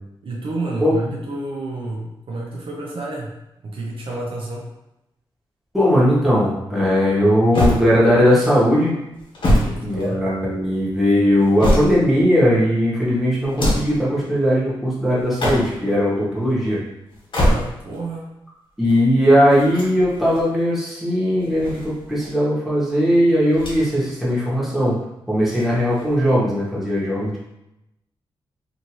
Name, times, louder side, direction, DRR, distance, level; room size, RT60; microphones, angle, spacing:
voice 1, 0.2-3.3 3.6-4.7 9.4-10.2 17.4-18.3, right 2 dB, 70° right, -3 dB, 0.7 m, -29 dB
voice 2, 5.7-9.0 9.8-16.8 18.8-24.9 25.3-27.4, equal, ahead, -8 dB, 1.2 m, -18 dB
sound 1, 7.5-8.3 9.1-10.5 11.2-12.2 13.4-14.0 15.2-15.9 17.1-18.0 19.5-20.5 21.4-22.3 23.5-24.1 24.4-24.5 25.5-26.3, equal, 65° left, 1.2 m, -24 dB
2.7 x 2.6 x 3.0 m, 0.89 s
cardioid pair, 75°, 9 cm